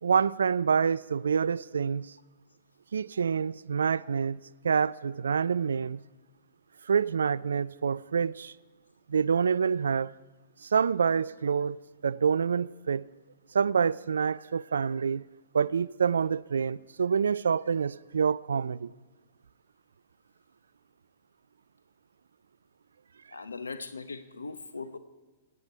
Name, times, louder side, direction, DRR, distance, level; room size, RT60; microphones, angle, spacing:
voice 1, 0.0-2.1 2.9-6.0 6.9-8.5 9.1-10.1 10.6-13.1 13.5-15.3 15.5-18.9, right 6 dB, 75° right, 0.3 m, -27 dB
voice 2, 23.3-25.0, left 4 dB, 85° left, 1.0 m, -39 dB
24.5 x 9.7 x 4.7 m
figure-of-eight pair, 115°, 0 cm